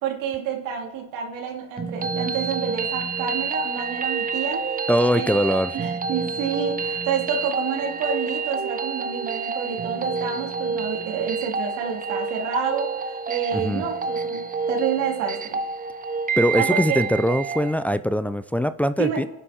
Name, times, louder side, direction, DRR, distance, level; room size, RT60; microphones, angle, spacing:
voice 1, 0.0-5.3 5.7-15.6 16.6-17.0 19.0-19.2, right 7 dB, 90° right, 3.2 m, -29 dB
sound 1, 1.8-17.7, right 5 dB, 30° right, 0.8 m, -28 dB
voice 2, 4.9-5.7 13.5-13.8 16.4-19.3, equal, 5° left, 0.5 m, -22 dB
29.0 x 10.5 x 4.4 m
cardioid pair, 95°, 30 cm